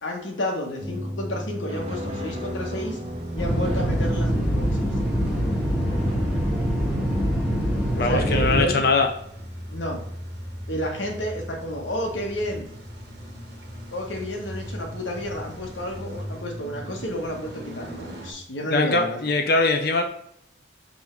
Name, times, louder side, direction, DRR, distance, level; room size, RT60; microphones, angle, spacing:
voice 1, 0.0-3.0 3.3-4.9 8.0-8.8 9.7-10.0 10.7-12.7 13.9-19.2, left 1 dB, 90° left, 1 dB, 1.6 m, -31 dB
sound 1, 0.8-4.8 5.9-6.1, equal, 35° right, 1.0 m, -35 dB
Car / Engine starting / Idling, 1.8-18.3, equal, 65° right, 1.5 m, -38 dB
sound 2, 3.4-8.6, equal, 5° right, 1.6 m, -24 dB
voice 2, 7.9-9.1 18.7-20.0, left 3 dB, 55° left, 4 dB, 0.7 m, -21 dB
5.6 x 3.7 x 4.6 m, 0.72 s
head